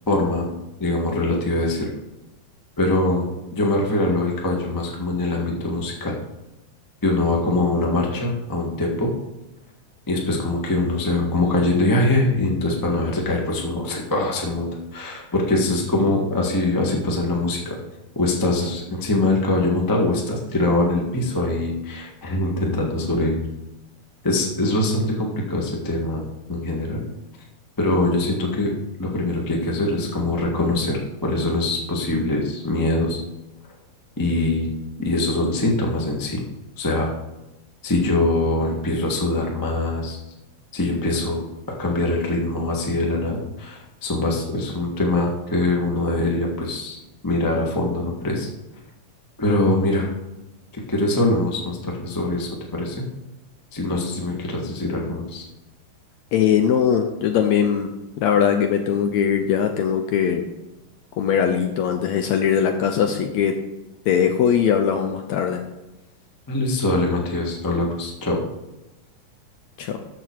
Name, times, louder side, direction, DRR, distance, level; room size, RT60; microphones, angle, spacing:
voice 1, 0.1-0.5 0.8-1.9 2.8-6.1 7.0-9.1 10.1-17.8 18.1-23.4 24.2-26.2 26.5-27.0 27.8-28.7 29.0-33.2 34.2-34.7 35.0-36.4 36.8-37.1 37.8-40.2 40.7-41.4 41.8-47.0 47.2-48.5 49.4-50.1 50.7-53.0 53.7-55.5 66.5-68.4, left 2 dB, 25° left, -1 dB, 0.4 m, -23 dB
voice 2, 56.3-57.9 58.2-60.5 61.1-63.6 64.1-65.6 69.8-70.0, left 8 dB, 75° left, 5 dB, 1.7 m, -20 dB
13.5 x 6.0 x 4.7 m, 0.99 s
omnidirectional pair, 3.8 m